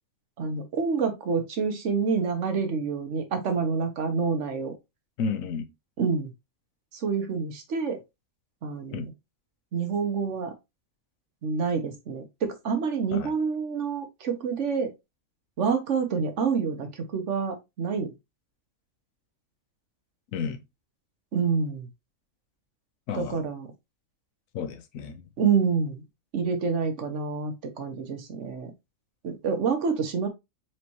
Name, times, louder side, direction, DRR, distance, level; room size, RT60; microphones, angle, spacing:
voice 1, 0.4-4.7 6.0-6.3 6.9-8.0 8.6-9.1 9.7-10.5 11.4-14.9 15.6-18.1 21.3-21.9 23.1-23.7 25.4-26.0 26.3-28.7 29.2-30.3, right 5 dB, 65° right, 1.2 m, -27 dB
voice 2, 5.2-5.6 8.9-9.1 13.1-13.3 20.3-20.6 23.1-23.4 24.5-25.2, left 6 dB, 80° left, 1.1 m, -31 dB
4.5 x 3.2 x 2.9 m
omnidirectional pair, 1.4 m